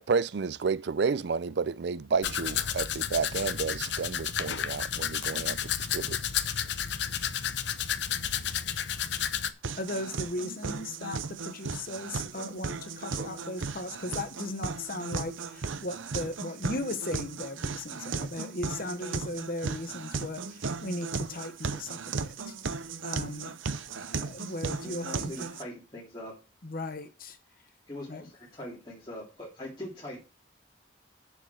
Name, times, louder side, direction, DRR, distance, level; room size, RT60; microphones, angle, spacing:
voice 1, 0.0-6.2, right 5 dB, 60° right, 0.4 m, -31 dB
Domestic sounds home sounds, 2.2-9.5, left 9 dB, 65° left, 0.7 m, -31 dB
sound 1, 9.6-25.6, right 4 dB, 85° right, 0.8 m, -36 dB
voice 2, 9.8-22.5 23.0-23.5 24.1-25.6 26.6-27.4 28.1-28.3, left 2 dB, 45° left, 1.1 m, -37 dB
voice 3, 24.8-26.3 27.9-30.2, left 1 dB, 25° left, 3.3 m, -42 dB
7.0 x 7.0 x 6.2 m
head